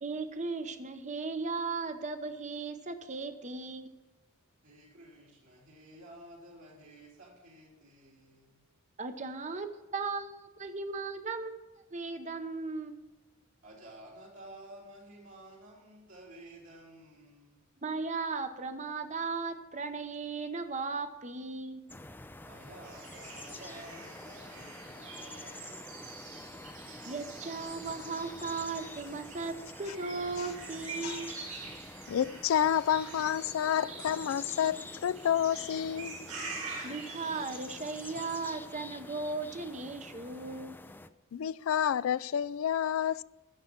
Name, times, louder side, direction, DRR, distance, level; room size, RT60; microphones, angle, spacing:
voice 1, 0.0-3.9 9.0-11.6 11.9-13.0 17.8-21.8 27.1-31.3 36.8-40.8, right 4 dB, 35° right, 0.9 m, -37 dB
voice 2, 4.6-8.6 13.6-17.7 22.4-26.5, right 1 dB, 65° right, 3.2 m, -52 dB
sound 1, 21.9-41.1, left 2 dB, 10° left, 0.5 m, -47 dB
sound 2, 22.8-38.6, right 4 dB, 85° right, 4.9 m, -46 dB
voice 3, 32.1-36.3 41.3-43.2, left 9 dB, 70° left, 0.3 m, -29 dB
15.0 x 6.6 x 5.9 m
head